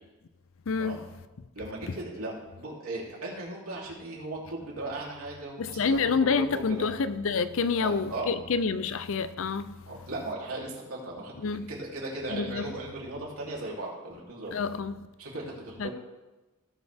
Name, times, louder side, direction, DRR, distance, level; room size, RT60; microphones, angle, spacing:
voice 1, 0.7-1.1 5.6-9.7 11.4-11.7 12.3-12.7 14.5-15.1 15.8-15.9, left 5 dB, 65° left, 0.5 m, -28 dB
voice 2, 1.5-6.9 7.7-8.3 9.8-11.3 11.7-14.6 15.2-15.9, right 2 dB, 80° right, 3.2 m, -37 dB
17.0 x 6.2 x 3.5 m
head